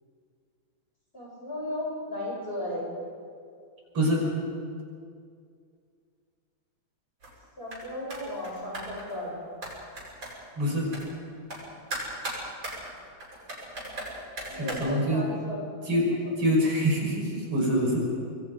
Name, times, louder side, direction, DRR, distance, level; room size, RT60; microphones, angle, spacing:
voice 1, 1.1-2.9 7.6-9.4 14.5-15.6, left 1 dB, 25° left, -4 dB, 8.1 m, -35 dB
voice 2, 3.9-4.3 10.6-10.9 14.5-15.3 15.9-16.1 16.4-18.0, equal, 90° right, -2 dB, 6.9 m, -25 dB
sound 1, 7.2-9.1 9.6-10.6 10.9-11.1 11.5-11.6 11.9-14.7, right 1 dB, 65° right, 8.3 m, -37 dB
26.0 x 23.0 x 5.3 m, 2.2 s
omnidirectional pair, 2.3 m